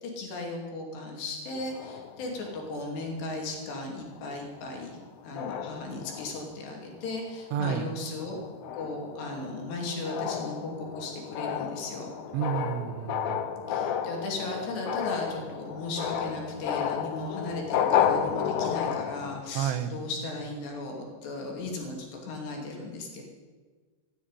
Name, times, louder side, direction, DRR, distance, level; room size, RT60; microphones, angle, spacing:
voice 1, 0.0-5.0 5.2-8.4 8.7-12.1 13.7-23.2, left 2 dB, 60° left, 1 dB, 4.6 m, -36 dB
sound 1, 1.6-3.4 4.1-4.3 4.6-5.0 5.4-6.6 7.1-7.4 7.8-19.4, left 8 dB, 80° left, 2.1 m, -32 dB
voice 2, 7.5-7.9 12.3-13.4 19.6-20.0, right 9 dB, 80° right, 10 dB, 3.4 m, -30 dB
15.0 x 9.5 x 9.8 m, 1.4 s
omnidirectional pair, 5.6 m